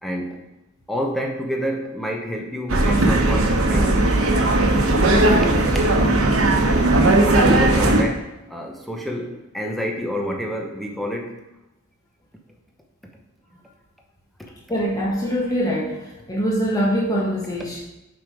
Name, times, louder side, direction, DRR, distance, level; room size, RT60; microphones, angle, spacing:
voice 1, 0.0-0.4 0.9-4.1 4.5-5.3 7.4-11.4, equal, ahead, 1 dB, 1.0 m, -28 dB
sound 1, 2.7-8.0, right 2 dB, 75° right, 1.0 m, -17 dB
voice 2, 14.7-17.8, equal, 15° left, -5 dB, 1.4 m, -23 dB
7.6 x 5.1 x 4.9 m, 0.95 s
head